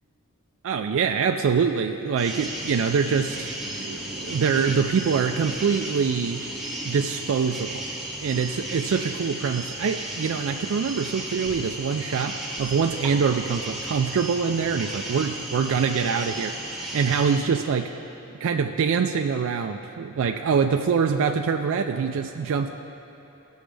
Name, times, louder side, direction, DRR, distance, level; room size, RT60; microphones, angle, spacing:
voice 1, 0.6-3.5 3.8-6.4 6.8-7.9 8.2-17.9 18.4-22.7, right 6 dB, 60° right, 4 dB, 0.4 m, -24 dB
sound 1, 2.2-17.4, right 1 dB, ahead, 1.5 m, -34 dB
18.0 x 6.2 x 3.4 m, 3.0 s
head